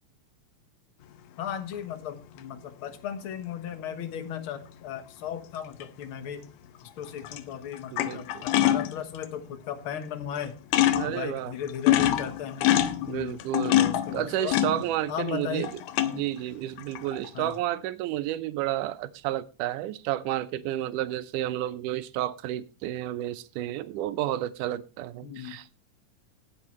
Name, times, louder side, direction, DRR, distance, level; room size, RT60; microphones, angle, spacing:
voice 1, 1.4-6.5 7.0-10.6 11.0-12.7 13.0-13.4 13.8-14.6 15.1-15.7 17.3-17.6 25.2-25.6, left 9 dB, 55° left, 9 dB, 1.6 m, -36 dB
sound 1, 1.7-1.8 5.8-6.0 7.0-7.4 7.7-9.2 10.0-10.1 10.4-10.5 10.7-11.2 11.6-15.3 15.6-16.3 16.8-17.3, left 12 dB, 75° left, 2.1 m, -25 dB
voice 2, 7.9-8.3 10.9-11.5 13.1-13.8 14.1-15.7 16.1-25.8, right 13 dB, 80° right, 12 dB, 2.2 m, -31 dB
19.0 x 7.7 x 3.1 m, 0.33 s
omnidirectional pair, 3.7 m